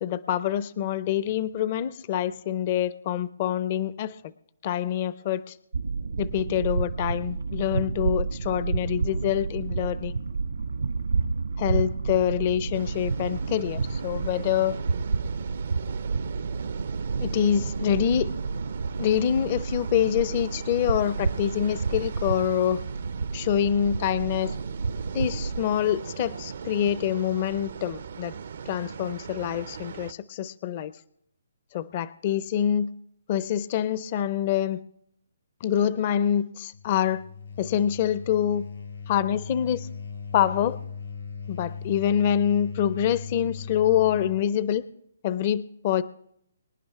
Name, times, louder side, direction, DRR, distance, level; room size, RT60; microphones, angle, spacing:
voice 1, 0.0-4.2 4.6-5.6 6.2-10.1 11.6-14.8 17.2-18.3 19.0-22.8 23.3-24.6 25.1-28.3 28.7-30.9 31.7-32.9 33.3-34.8 35.6-37.2 37.6-38.7 39.1-39.9 40.3-40.8 41.5-44.8 45.2-46.0, left 10 dB, 40° left, 16 dB, 0.6 m, -26 dB
sound 1, 5.7-25.6, right 4 dB, 80° right, 1.6 m, -30 dB
sound 2, 12.7-30.1, right 6 dB, 60° right, 0.6 m, -39 dB
sound 3, 36.7-44.5, left 5 dB, 90° left, 3.9 m, -38 dB
25.0 x 10.5 x 3.5 m, 0.72 s
figure-of-eight pair, 140°, 0 cm